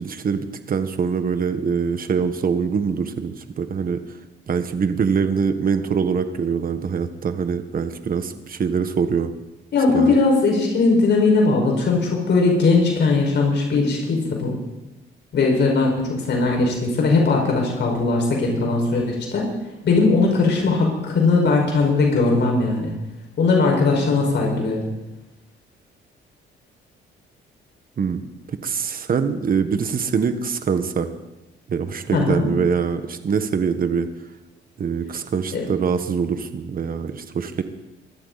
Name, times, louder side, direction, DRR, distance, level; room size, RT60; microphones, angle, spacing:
voice 1, 0.0-4.0 4.5-9.3 9.9-10.2 28.0-28.2 28.6-31.1 31.7-34.1 34.8-37.6, right 6 dB, 45° right, 9 dB, 1.4 m, -23 dB
voice 2, 9.7-14.6 15.3-19.5 19.8-22.9 23.4-24.8 32.1-32.5 35.5-35.7, left 3 dB, 60° left, 0 dB, 5.3 m, -19 dB
23.5 x 14.0 x 4.1 m, 0.98 s
cardioid pair, 90°, 20 cm